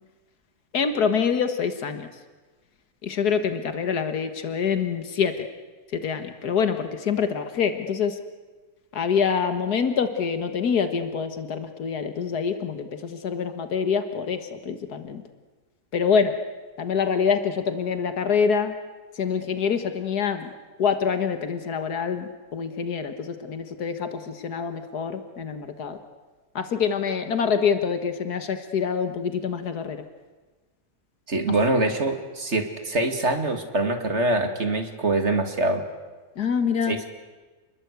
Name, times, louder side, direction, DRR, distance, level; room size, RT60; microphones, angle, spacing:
voice 1, 0.7-2.1 3.0-5.5 5.9-8.2 8.9-15.2 15.9-16.3 16.8-18.7 19.2-20.5 20.8-26.0 26.6-30.0 36.4-37.0, left 6 dB, 85° left, 8 dB, 2.0 m, -25 dB
voice 2, 31.3-35.8 36.8-37.1, right 2 dB, 45° right, 6 dB, 2.6 m, -24 dB
29.5 x 21.0 x 8.2 m, 1.3 s
omnidirectional pair, 1.6 m